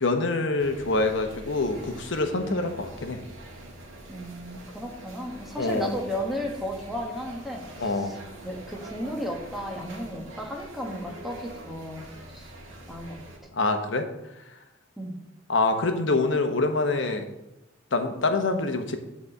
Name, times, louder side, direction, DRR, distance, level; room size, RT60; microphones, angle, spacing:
voice 1, 0.0-3.2 5.6-5.9 7.8-8.1 13.5-14.1 15.5-17.2 17.9-19.0, left 3 dB, 65° left, 6 dB, 1.0 m, -25 dB
sound 1, 0.6-13.4, right 1 dB, 80° right, 1.7 m, -45 dB
voice 2, 4.1-8.2 8.4-12.0 12.3-12.5 12.9-13.2 15.0-15.1, equal, ahead, -1 dB, 1.4 m, -34 dB
8.5 x 4.2 x 6.7 m, 0.92 s
head